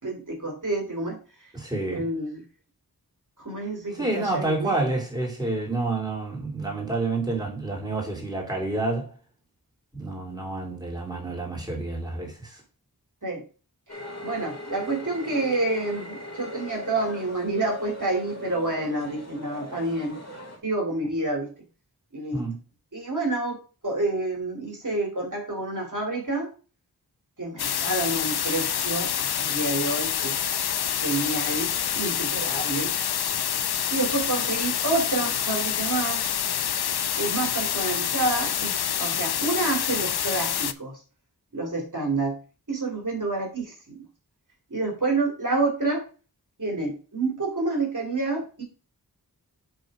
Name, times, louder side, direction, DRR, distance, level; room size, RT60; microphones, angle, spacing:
voice 1, 0.0-1.2 1.9-2.4 3.4-4.7 13.2-13.4 14.2-20.2 20.6-21.5 22.1-22.4 22.9-26.5 27.4-30.4 31.0-32.9 33.9-36.2 37.2-41.0 41.5-42.4 42.7-44.0 44.7-46.0 46.6-48.6, right 2 dB, 55° right, 2.8 m, -28 dB
voice 2, 1.5-2.1 3.9-9.2 9.9-12.6 22.3-22.6, right 2 dB, 10° right, 3.1 m, -29 dB
sound 1, 13.9-20.6, left 1 dB, 45° left, 2.7 m, -39 dB
sound 2, 27.6-40.7, left 9 dB, 85° left, 0.5 m, -27 dB
8.0 x 3.8 x 5.2 m
wide cardioid pair, 60°, 38 cm